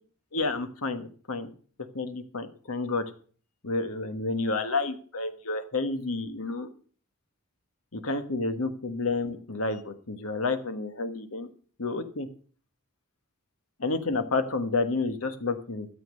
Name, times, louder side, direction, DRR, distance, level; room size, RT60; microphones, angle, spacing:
voice 1, 0.3-1.5 1.9-3.0 3.6-6.7 7.9-11.5 11.8-12.3 13.8-15.9, left 3 dB, 80° left, 9 dB, 1.4 m, -30 dB
13.0 x 7.7 x 6.4 m, 0.44 s
head